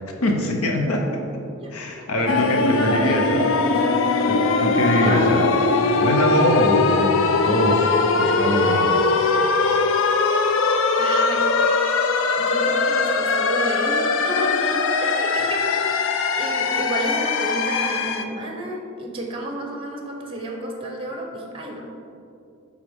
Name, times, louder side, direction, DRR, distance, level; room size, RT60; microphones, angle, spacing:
voice 1, 0.2-1.2 1.7-3.4 4.3-5.5 5.9-9.0, left 1 dB, 85° left, 2 dB, 0.7 m, -23 dB
voice 2, 2.1-3.2 3.7-3.8 4.9-5.5 11.0-12.0 12.4-21.9, right 1 dB, 25° right, 1 dB, 0.7 m, -31 dB
sound 1, 2.3-18.2, left 4 dB, 60° left, 0.4 m, -21 dB
8.2 x 3.7 x 3.5 m, 2.6 s
head